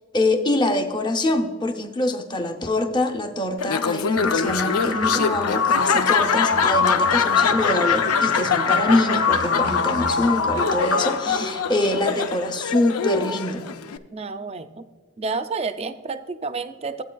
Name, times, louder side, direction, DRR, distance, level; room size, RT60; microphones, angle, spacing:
voice 1, 0.1-13.7, left 1 dB, 20° left, 4 dB, 0.6 m, -24 dB
Laughter, 3.6-14.0, left 6 dB, 85° left, 0.5 m, -25 dB
sound 1, 4.2-12.1, left 5 dB, 65° left, 0.9 m, -24 dB
voice 2, 11.3-11.8 14.1-14.8 15.2-17.0, right 4 dB, 25° right, 10 dB, 0.4 m, -30 dB
15.0 x 8.3 x 2.3 m, 1.4 s
head